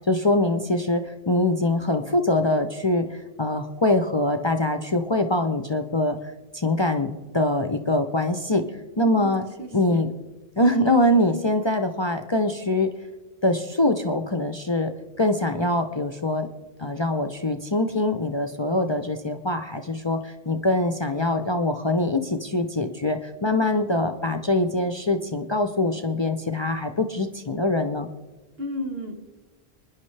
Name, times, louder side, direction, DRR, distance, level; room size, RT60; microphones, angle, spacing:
voice 1, 0.1-6.2 6.5-8.6 9.0-9.4 9.7-10.1 10.6-12.9 13.4-14.9 15.2-16.5 16.8-28.1, left 1 dB, 30° left, 7 dB, 0.6 m, -23 dB
voice 2, 9.1-10.0 28.6-29.2, equal, 70° right, 4 dB, 1.7 m, -34 dB
25.5 x 10.5 x 3.3 m, 1.2 s
omnidirectional pair, 1.1 m